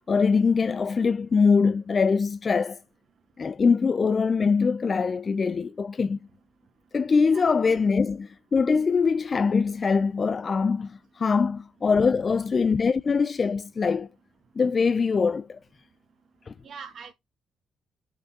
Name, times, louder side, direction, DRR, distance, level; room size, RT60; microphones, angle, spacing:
voice 1, 0.0-2.8 3.4-6.2 6.9-14.1 14.6-15.6 16.5-16.6, left 5 dB, 35° left, 0.3 m, -23 dB
voice 2, 7.2-7.6 16.6-17.1, right 6 dB, 50° right, 1.2 m, -43 dB
6.6 x 5.9 x 2.7 m
cardioid pair, 90°, 0 cm